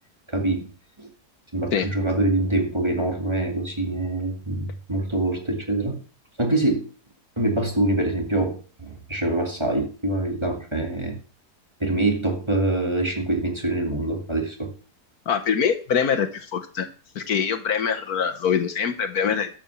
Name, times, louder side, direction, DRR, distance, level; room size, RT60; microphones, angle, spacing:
voice 1, 0.3-0.7 1.0-1.1 1.5-6.0 6.4-6.9 7.4-11.2 11.8-14.7, right 2 dB, 15° right, 2 dB, 2.1 m, -25 dB
voice 2, 15.3-16.9 17.1-19.5, left 7 dB, 65° left, 8 dB, 1.5 m, -24 dB
12.5 x 6.2 x 7.0 m, 0.39 s
omnidirectional pair, 1.7 m